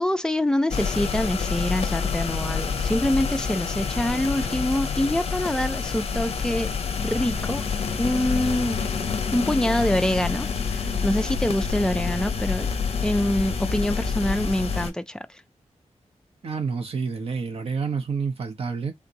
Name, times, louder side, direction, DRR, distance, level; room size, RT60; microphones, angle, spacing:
voice 1, 0.0-6.7 7.0-7.6 8.0-8.8 9.3-12.7 13.0-15.4, left 1 dB, 5° left, 0.3 m, -25 dB
sound 1, 0.7-14.9, left 5 dB, 55° left, 0.6 m, -27 dB
voice 2, 16.4-18.9, right 5 dB, 55° right, 0.8 m, -28 dB
3.6 x 2.8 x 2.6 m
wide cardioid pair, 175°, 12 cm